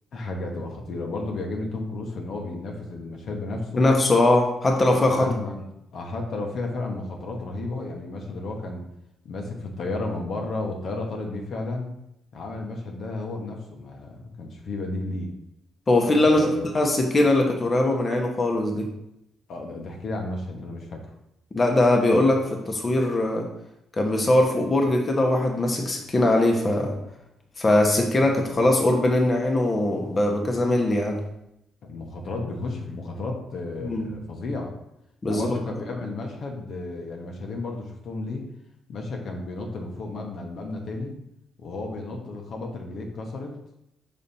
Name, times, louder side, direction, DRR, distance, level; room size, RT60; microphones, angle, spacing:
voice 1, 0.1-3.9 4.9-5.6 5.9-8.8 9.2-11.9 12.3-15.3 16.2-16.8 19.5-21.1 31.8-34.7 35.2-38.5 38.9-41.1 41.6-43.5, left 2 dB, 60° left, 2 dB, 1.1 m, -33 dB
voice 2, 3.8-5.3 15.9-18.9 21.5-23.5 24.0-26.9 27.6-31.2 33.8-34.1 35.2-35.5, left 1 dB, 30° left, 2 dB, 1.0 m, -21 dB
5.4 x 4.2 x 4.2 m, 0.82 s
cardioid pair, 90°, 0 cm